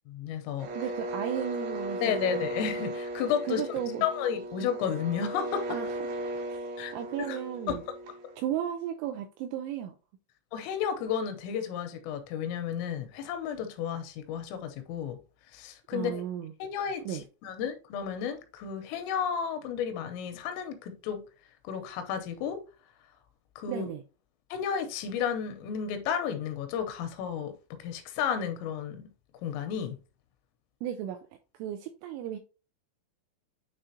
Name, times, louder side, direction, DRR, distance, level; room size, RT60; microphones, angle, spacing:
voice 1, 0.1-0.7 2.0-3.6 4.0-5.6 6.8-6.9 7.3-7.4 10.5-15.2 15.5-16.2 16.6-21.2 21.6-22.6 23.6-23.9 24.5-27.5 27.8-29.1 29.4-30.0, left 8 dB, 85° left, 3.2 m, -32 dB
sound 1, 0.6-8.4, right 1 dB, 70° right, 2.5 m, -37 dB
voice 2, 0.8-2.5 3.4-4.1 5.7-6.6 6.9-7.8 8.4-9.9 15.9-16.5 17.1-17.2 23.7-24.0 30.8-31.2 31.6-32.4, right 10 dB, 85° right, 2.7 m, -35 dB
9.5 x 3.6 x 2.8 m
omnidirectional pair, 6.0 m